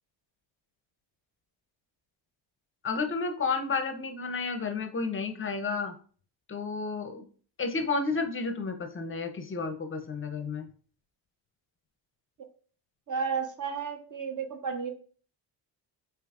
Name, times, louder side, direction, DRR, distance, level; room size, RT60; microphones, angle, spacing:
voice 1, 2.8-5.9 6.5-7.2 7.6-10.7, left 4 dB, 30° left, 6 dB, 0.6 m, -31 dB
voice 2, 13.1-14.9, right 6 dB, 40° right, 7 dB, 0.8 m, -32 dB
4.9 x 2.9 x 2.4 m, 0.42 s
cardioid pair, 100°, 46 cm